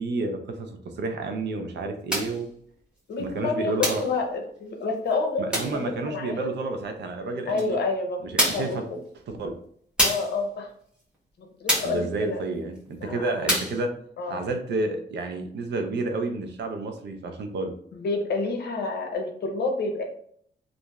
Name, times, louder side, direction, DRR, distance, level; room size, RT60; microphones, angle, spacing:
voice 1, 0.0-2.5 3.2-4.0 5.4-7.8 8.2-8.8 9.3-9.5 11.8-13.9 14.3-17.7, right 3 dB, 85° right, 5 dB, 0.5 m, -30 dB
sound 1, 2.1-2.4 3.8-4.1 5.5-5.8 7.6-7.7 8.4-8.8 10.0-10.4 11.7-12.0 13.5-13.8, equal, 5° right, 1.0 m, -25 dB
voice 2, 3.1-5.5 5.7-6.5 7.5-9.0 10.0-10.7 11.4-12.4 13.0-13.4 14.2-14.5 17.9-20.0, left 3 dB, 75° left, 3 dB, 0.6 m, -29 dB
2.9 x 2.5 x 2.2 m, 0.63 s
wide cardioid pair, 125°, 17 cm